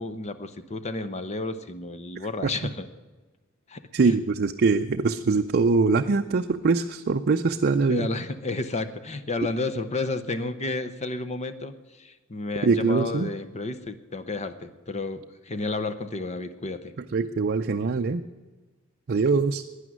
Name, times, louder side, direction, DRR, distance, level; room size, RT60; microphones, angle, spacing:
voice 1, 0.0-2.9 3.7-4.1 7.9-16.9, left 3 dB, 30° left, 11 dB, 0.8 m, -32 dB
voice 2, 3.9-8.1 12.6-13.3 17.0-18.2 19.1-19.6, right 4 dB, 50° right, 6 dB, 0.5 m, -23 dB
12.5 x 9.9 x 9.3 m, 1.3 s
head